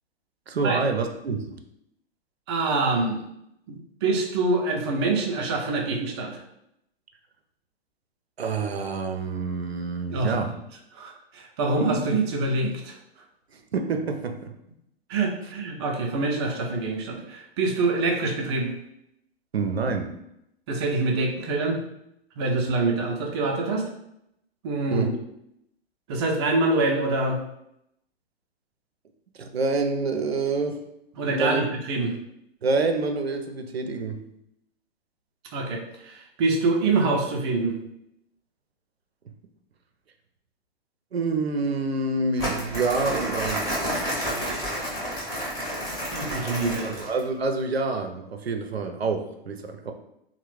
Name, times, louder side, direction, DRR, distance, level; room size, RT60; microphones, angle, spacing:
voice 1, 0.5-1.6 8.4-10.5 13.5-14.6 19.5-20.1 24.9-25.1 29.3-30.8 31.2-31.6 32.0-32.1 32.6-34.3 41.1-43.7 46.8-49.9, right 3 dB, 80° right, 5 dB, 0.5 m, -27 dB
voice 2, 2.5-3.2 3.7-6.4 10.1-10.4 10.9-13.0 15.1-18.7 20.7-21.8 22.4-23.8 24.6-25.1 26.1-27.4 31.2-32.1 35.5-37.8 44.0-44.6 46.1-47.0, right 3 dB, 30° right, 1 dB, 0.4 m, -25 dB
Crumpling crinkling, 42.4-47.2, equal, 10° left, 0.7 m, -30 dB
3.2 x 2.1 x 3.1 m, 0.80 s
figure-of-eight pair, 110°, 30 cm